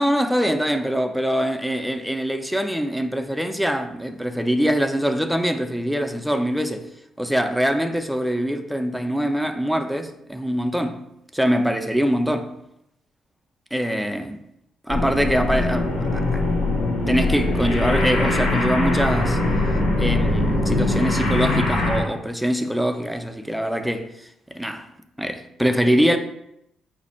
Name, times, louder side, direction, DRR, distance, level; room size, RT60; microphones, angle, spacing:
voice 1, 0.0-6.9 7.2-11.0 11.3-12.5 13.7-14.4 14.9-16.4 17.1-19.4 20.0-24.1 24.5-24.9 25.2-26.2, equal, ahead, 0.4 m, -23 dB
sound 1, 14.9-22.0, left 2 dB, 75° left, 0.9 m, -22 dB
4.1 x 2.5 x 4.2 m
cardioid pair, 90°, 0 cm